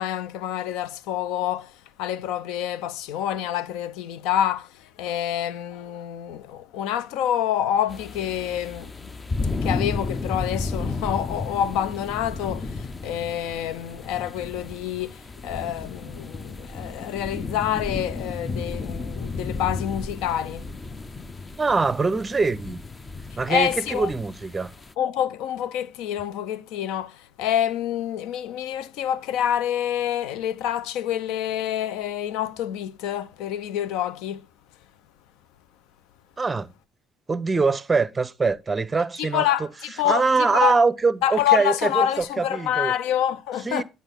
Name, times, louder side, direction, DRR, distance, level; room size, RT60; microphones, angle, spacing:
voice 1, 0.0-8.9 9.6-20.7 23.3-24.1 25.0-34.5 39.2-40.8 41.2-43.8, left 11 dB, 65° left, 0.5 m, -27 dB
sound 1, 7.9-24.9, left 3 dB, 25° left, 0.7 m, -33 dB
voice 2, 21.6-22.8 23.4-24.7 36.4-36.7 37.3-39.5 40.0-42.9 43.6-43.8, right 4 dB, 25° right, 0.6 m, -23 dB
10.5 x 4.1 x 5.5 m
figure-of-eight pair, 50°, 0 cm